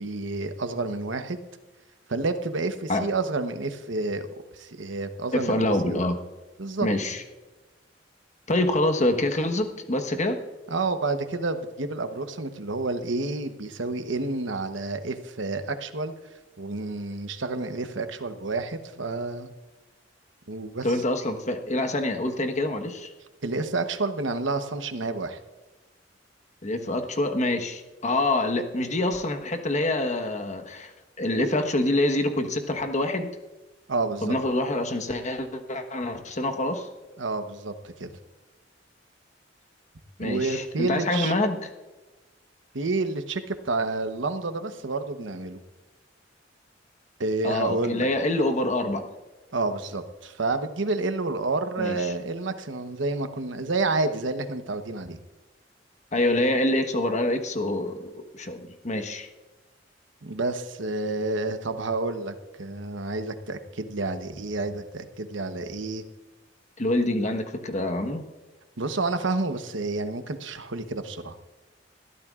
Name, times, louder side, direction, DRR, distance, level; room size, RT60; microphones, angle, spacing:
voice 1, 0.0-1.4 2.1-4.3 4.5-6.0 6.6-6.9 10.7-16.1 16.6-19.5 20.5-20.9 23.4-25.4 33.9-34.3 37.2-38.1 40.2-41.3 42.7-45.6 47.2-48.1 49.5-55.2 60.2-62.3 62.6-66.0 68.8-71.3, right 3 dB, 90° right, 8 dB, 1.0 m, -29 dB
voice 2, 5.3-6.2 6.8-7.2 8.5-10.4 20.8-23.1 26.6-30.9 31.2-33.3 34.2-36.9 40.2-41.6 47.4-49.0 51.8-52.1 56.1-59.3 66.8-68.2, left 1 dB, 40° left, 6 dB, 1.2 m, -26 dB
20.5 x 14.0 x 2.5 m, 1.2 s
head